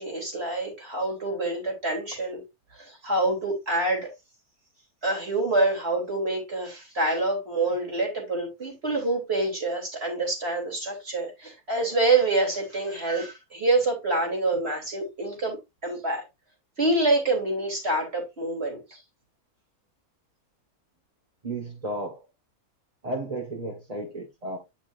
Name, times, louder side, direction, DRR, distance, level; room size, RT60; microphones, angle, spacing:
voice 1, 0.0-2.4 2.7-4.1 5.0-15.6 15.8-16.3 16.8-19.0, right 2 dB, 40° right, 3.8 m, -26 dB
voice 2, 21.4-22.2 23.0-24.6, right 2 dB, 25° right, 1.6 m, -33 dB
9.4 x 6.1 x 2.7 m
omnidirectional pair, 1.6 m